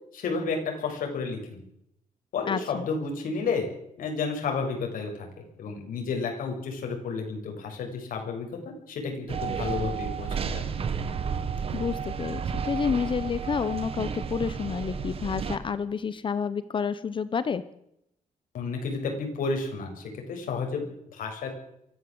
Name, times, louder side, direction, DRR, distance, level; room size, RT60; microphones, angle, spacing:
voice 1, 0.1-1.6 2.3-3.7 4.0-5.3 5.6-10.6 18.5-21.5, left 4 dB, 85° left, 2 dB, 6.9 m, -31 dB
voice 2, 2.5-2.9 11.7-17.6, left 6 dB, 35° left, 15 dB, 1.0 m, -29 dB
sound 1, 9.3-15.6, right 6 dB, 45° right, 1.9 m, -32 dB
23.5 x 16.0 x 7.9 m, 0.78 s
wide cardioid pair, 165°, 14 cm